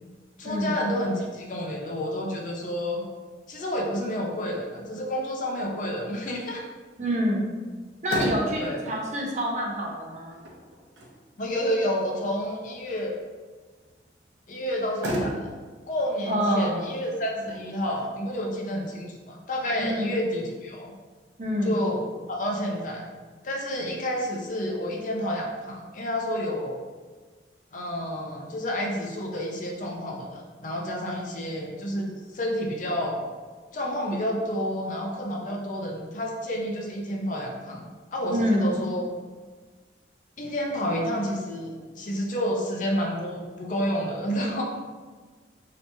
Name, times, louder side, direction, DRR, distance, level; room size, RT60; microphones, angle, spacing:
voice 1, 0.4-3.0 3.5-6.6 8.6-8.8 11.4-13.2 14.5-15.5 15.9-20.9 21.6-23.0 23.4-26.8 27.7-33.2 33.7-39.0 40.4-44.6, equal, 45° left, 0 dB, 0.6 m, -30 dB
voice 2, 7.0-7.5 8.0-10.4 16.3-16.9 19.8-20.1 21.4-21.8 38.3-38.7, equal, 40° right, -2 dB, 0.6 m, -27 dB
Motor vehicle (road), 7.7-20.7, equal, 80° right, 0.7 m, -38 dB
2.9 x 2.9 x 3.3 m, 1.4 s
head